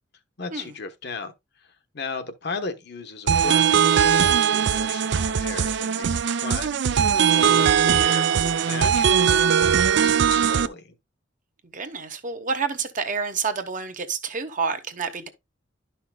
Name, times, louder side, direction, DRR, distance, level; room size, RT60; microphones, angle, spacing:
voice 1, 0.4-1.3 1.9-10.9, left 4 dB, 60° left, 1.0 m, -36 dB
sound 1, 3.3-10.7, right 8 dB, 70° right, 0.4 m, -20 dB
voice 2, 11.7-15.3, right 5 dB, 45° right, 1.0 m, -29 dB
11.5 x 5.7 x 2.3 m
head